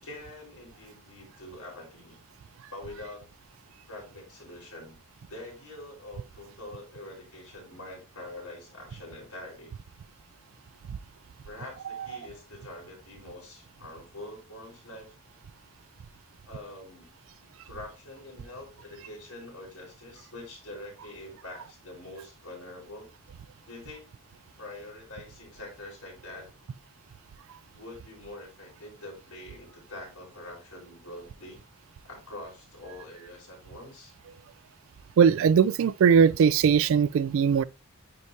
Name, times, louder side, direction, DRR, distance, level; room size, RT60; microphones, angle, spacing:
voice 1, 0.0-2.2 2.7-3.2 3.9-5.0 5.3-9.7 11.4-15.1 16.4-17.1 17.6-23.1 23.7-24.1 24.6-26.5 27.7-31.6 32.0-34.1, left 2 dB, 80° left, 4.5 m, -44 dB
voice 2, 35.2-37.6, right 7 dB, 60° right, 0.3 m, -20 dB
9.6 x 4.7 x 2.7 m
head